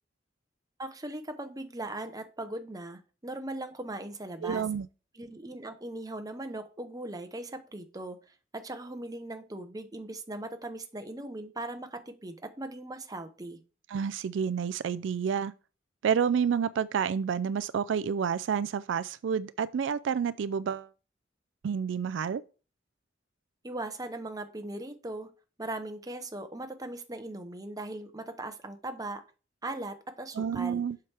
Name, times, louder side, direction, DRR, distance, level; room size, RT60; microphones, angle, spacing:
voice 1, 0.8-4.7 5.1-8.2 8.5-13.6 23.6-25.3 25.6-29.2 29.6-30.8, right 2 dB, 20° right, 0.8 m, -39 dB
voice 2, 4.4-4.9 13.9-15.5 16.0-20.9 21.6-22.4 30.4-31.0, right 7 dB, 75° right, 0.3 m, -29 dB
7.6 x 5.8 x 3.4 m
head